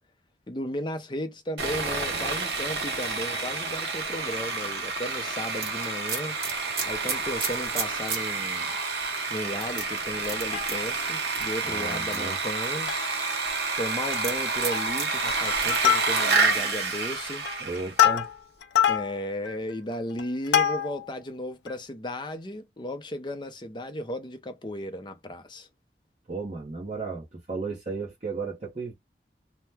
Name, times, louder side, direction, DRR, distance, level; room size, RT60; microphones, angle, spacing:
voice 1, 0.5-6.4 6.9-8.7 9.3-12.9 13.8-17.5 18.9-25.7, left 1 dB, 25° left, 0.6 m, -35 dB
Sawing, 1.6-18.0, right 4 dB, 70° right, 1.0 m, -29 dB
sound 1, 5.6-8.2 8.7-8.8 9.6-10.8 11.3-11.6 12.1-12.8 14.1-15.1 15.6-15.8 16.1-16.3, right 5 dB, 55° right, 1.4 m, -32 dB
Plucked string instrument, 10.3-11.1 11.5-11.6 11.9-12.1 12.6-13.2 13.5-13.6 14.0-14.4 14.7-15.1 15.5-16.5 17.0-21.1 21.7-21.8, left 10 dB, 85° left, 0.5 m, -26 dB
voice 2, 11.6-12.4 17.6-18.3 26.3-28.9, right 4 dB, 40° right, 0.8 m, -34 dB
2.8 x 2.2 x 3.4 m
head